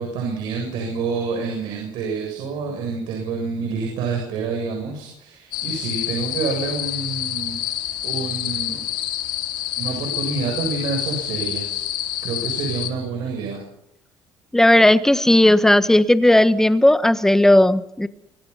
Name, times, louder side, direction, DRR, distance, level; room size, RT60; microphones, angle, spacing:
voice 1, 0.0-8.8 9.8-11.9 12.2-13.6, right 4 dB, 85° right, 7.4 m, -28 dB
sound 1, 5.5-12.9, left 13 dB, 85° left, 3.7 m, -28 dB
voice 2, 14.5-18.1, left 1 dB, 5° left, 1.2 m, -15 dB
26.0 x 23.0 x 5.6 m
cardioid pair, 125°, 8 cm